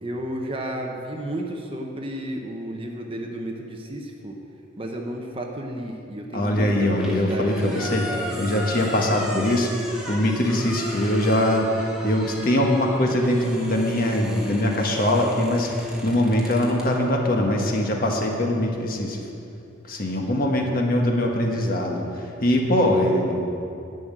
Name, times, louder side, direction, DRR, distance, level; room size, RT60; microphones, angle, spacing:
voice 1, 0.0-4.4 4.8-8.4, right 1 dB, 30° right, 1 dB, 1.0 m, -32 dB
voice 2, 6.3-8.0 8.3-9.7 10.1-19.2 19.9-23.4, left 1 dB, 45° left, 0 dB, 1.4 m, -22 dB
sound 1, 6.6-16.9, equal, 5° right, 1.5 m, -37 dB
10.5 x 6.3 x 8.8 m, 2.7 s
head